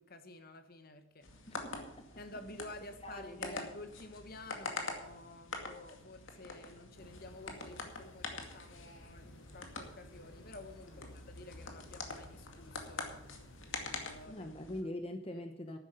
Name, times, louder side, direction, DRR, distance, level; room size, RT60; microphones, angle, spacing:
voice 1, 0.0-1.3 2.2-13.2 13.8-14.5 15.3-15.8, left 2 dB, 45° left, 9 dB, 1.2 m, -51 dB
sound 1, 1.2-14.8, left 3 dB, 70° left, 2.2 m, -45 dB
voice 2, 1.5-2.2 3.0-3.7 10.9-11.1 14.3-15.8, left 1 dB, 30° left, 6 dB, 0.9 m, -43 dB
sound 2, 6.9-14.3, left 1 dB, 85° left, 3.0 m, -55 dB
11.5 x 9.6 x 6.7 m, 0.83 s
head